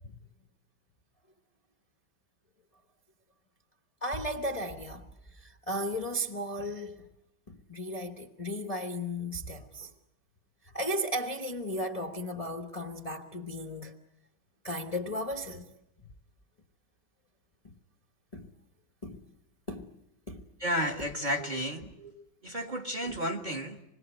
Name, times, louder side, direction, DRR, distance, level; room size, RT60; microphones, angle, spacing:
voice 1, 4.0-5.1 5.4-7.0 7.5-9.9 10.7-14.0 14.6-15.6 17.6-17.7 18.3-18.5 19.0-19.2 19.7-19.9 20.3-20.4 21.8-21.9 23.0-23.2, equal, 25° left, 1.0 m, -35 dB
voice 2, 20.6-22.1 22.4-23.8, equal, 25° right, 1.5 m, -32 dB
26.0 x 21.0 x 8.2 m
omnidirectional pair, 2.1 m